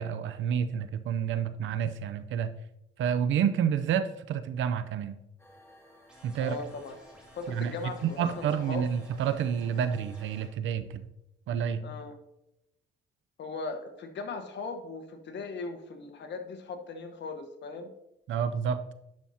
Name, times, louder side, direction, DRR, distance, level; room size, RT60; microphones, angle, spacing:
voice 1, 0.0-2.5 3.0-5.2 6.2-6.6 7.5-7.7 8.0-11.0 11.5-11.8 18.3-18.8, right 8 dB, 75° right, 12 dB, 0.6 m, -29 dB
sound 1, 5.4-10.5, left 1 dB, 10° left, 1.7 m, -56 dB
sound 2, 6.1-10.5, equal, 5° right, 2.9 m, -57 dB
voice 2, 6.4-7.0 7.3-8.8 11.8-12.1 13.4-17.9, left 4 dB, 65° left, 6 dB, 1.2 m, -38 dB
10.5 x 6.2 x 2.8 m, 0.88 s
cardioid pair, 90°, 20 cm